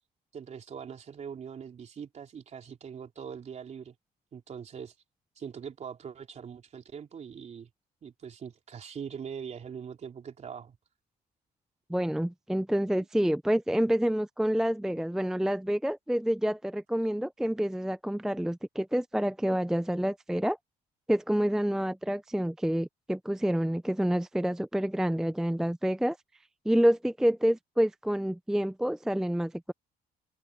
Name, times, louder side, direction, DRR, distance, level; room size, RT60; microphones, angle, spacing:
voice 1, 0.3-3.9 4.3-4.9 5.4-7.7 8.0-10.8 13.0-13.1, right 7 dB, 40° right, 3.6 m, -42 dB
voice 2, 11.9-20.6 21.1-26.2 26.7-29.7, equal, 5° right, 0.4 m, -28 dB
cardioid pair, 110°, 17 cm